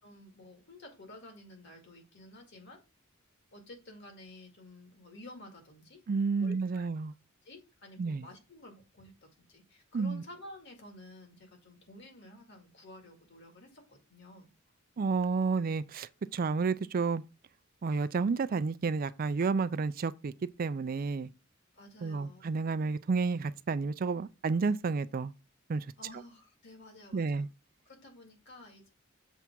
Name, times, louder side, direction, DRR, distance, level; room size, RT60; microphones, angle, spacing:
voice 1, 0.0-2.8 3.5-6.0 6.4-6.9 7.4-9.1 9.4-14.5 21.7-22.5 26.0-27.5 27.9-28.9, left 1 dB, 60° left, 2.3 m, -52 dB
voice 2, 6.1-7.1 8.0-8.3 9.9-10.2 15.0-17.2 17.8-20.3 20.6-21.3 22.0-25.3 25.7-25.9 27.1-27.5, right 4 dB, 45° right, 0.4 m, -31 dB
7.2 x 3.4 x 6.1 m
head